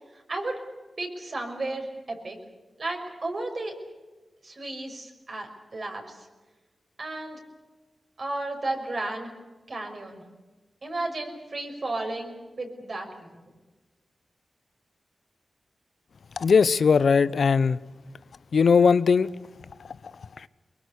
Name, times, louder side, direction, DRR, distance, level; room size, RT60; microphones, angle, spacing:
voice 1, 0.1-0.6 1.0-2.4 2.8-3.7 4.4-6.3 7.0-7.4 8.2-9.3 9.7-10.2 10.8-13.4, right 2 dB, 55° right, 2 dB, 5.9 m, -33 dB
voice 2, 16.4-17.8 18.5-19.3, left 5 dB, 80° left, 17 dB, 0.7 m, -19 dB
23.5 x 22.0 x 8.4 m, 1.2 s
cardioid pair, 55°, 0 cm